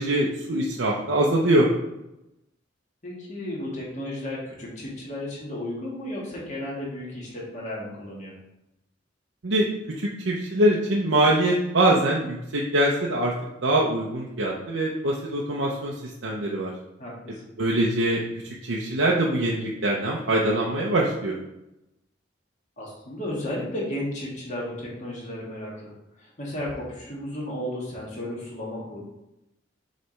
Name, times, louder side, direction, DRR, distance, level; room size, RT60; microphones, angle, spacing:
voice 1, 0.0-1.7 9.4-9.7 10.0-13.3 13.6-15.9 16.2-16.7 17.6-18.2 18.6-21.4, right 1 dB, 85° right, -3 dB, 0.8 m, -23 dB
voice 2, 3.0-8.3 17.0-17.4 22.8-25.7 26.2-29.0, left 1 dB, 40° left, -4 dB, 1.9 m, -33 dB
6.5 x 3.3 x 4.5 m, 0.90 s
head